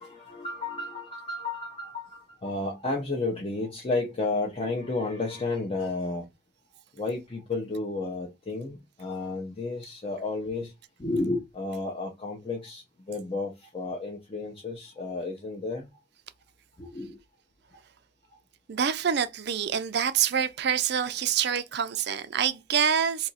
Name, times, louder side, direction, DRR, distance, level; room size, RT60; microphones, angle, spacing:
voice 1, 0.0-6.2 7.0-10.7 11.0-15.9 16.8-17.2, left 3 dB, 30° left, 0.6 m, -32 dB
voice 2, 18.7-23.3, right 8 dB, 55° right, 0.4 m, -26 dB
2.9 x 2.4 x 4.1 m
head